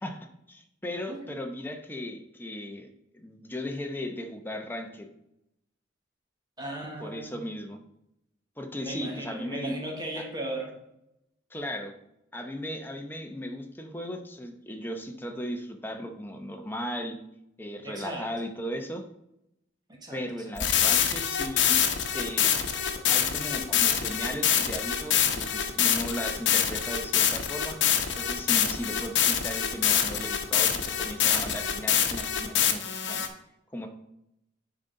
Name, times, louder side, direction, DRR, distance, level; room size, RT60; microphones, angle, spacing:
voice 1, 0.0-2.9 3.1-5.1 7.0-7.8 8.6-9.8 10.2-10.3 11.5-11.9 12.3-17.2 17.6-19.0 20.1-21.8 22.1-27.8 28.2-33.2 33.7-33.9, equal, 10° left, 4 dB, 0.9 m, -36 dB
voice 2, 6.6-7.3 8.8-10.7 17.8-18.3 19.9-20.2, right 1 dB, 25° right, 0 dB, 1.5 m, -36 dB
sound 1, 20.6-33.3, left 8 dB, 75° left, 0.9 m, -25 dB
10.0 x 4.0 x 3.9 m, 0.81 s
head